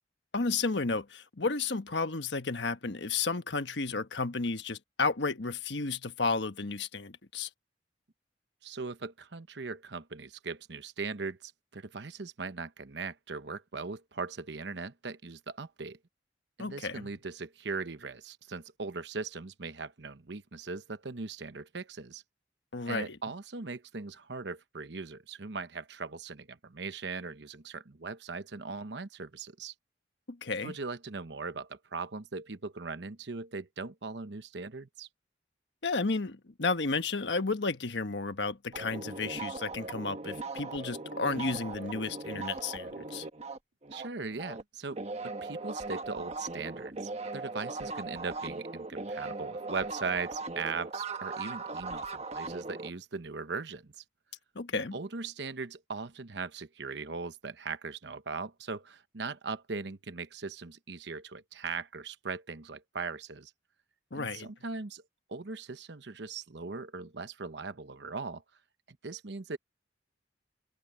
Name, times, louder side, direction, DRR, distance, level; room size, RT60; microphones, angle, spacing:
voice 1, 0.3-7.5 16.6-17.1 22.7-23.2 30.3-30.7 35.8-43.3 54.5-55.0 64.1-64.5, left 4 dB, 70° left, 1.3 m, -32 dB
voice 2, 8.6-16.0 16.6-22.2 22.9-29.7 30.6-35.1 41.2-41.6 43.9-54.0 54.7-63.5 64.1-65.0 65.3-68.4 69.0-69.6, right 4 dB, 65° right, 1.0 m, -39 dB
sound 1, 38.7-44.6 44.9-52.9, right 3 dB, 35° right, 1.3 m, -39 dB
head